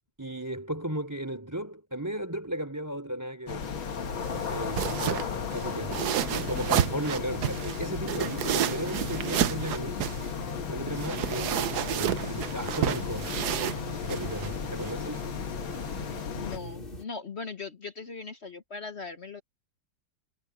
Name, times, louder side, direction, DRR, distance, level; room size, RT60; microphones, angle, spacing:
voice 1, 0.2-6.1 6.5-10.3 10.7-13.4 14.0-15.2, right 1 dB, 10° right, 3.7 m, -36 dB
sound 1, 3.5-16.6, left 7 dB, 80° left, 2.2 m, -36 dB
sound 2, 3.6-16.2, right 11 dB, 65° right, 1.1 m, -32 dB
sound 3, 4.0-17.0, left 1 dB, 25° left, 2.8 m, -40 dB
voice 2, 16.3-19.4, left 4 dB, 45° left, 1.0 m, -39 dB
omnidirectional pair, 2.2 m